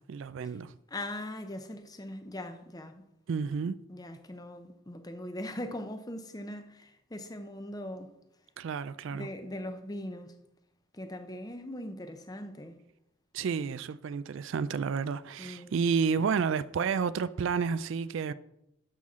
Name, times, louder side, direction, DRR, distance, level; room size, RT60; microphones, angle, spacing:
voice 1, 0.0-0.7 3.3-3.7 8.6-9.3 13.3-18.3, right 6 dB, 55° right, 0.3 m, -30 dB
voice 2, 0.9-3.1 3.9-8.1 9.1-10.3 10.9-12.7 15.4-15.7, left 1 dB, 15° left, 0.6 m, -40 dB
12.5 x 5.8 x 3.7 m
head